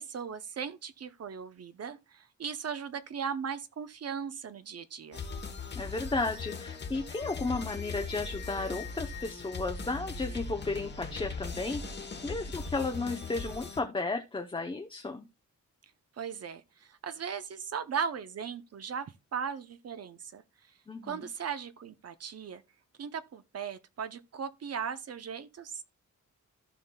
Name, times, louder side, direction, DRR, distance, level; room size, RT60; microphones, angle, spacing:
voice 1, 0.0-5.2 16.2-20.4 21.0-22.6 23.0-25.8, right 7 dB, 55° right, 0.6 m, -38 dB
sound 1, 5.1-13.8, left 4 dB, 35° left, 1.1 m, -39 dB
voice 2, 5.7-15.3 20.9-21.2, left 3 dB, 15° left, 0.6 m, -34 dB
15.0 x 5.6 x 2.2 m
wide cardioid pair, 175°, 30 cm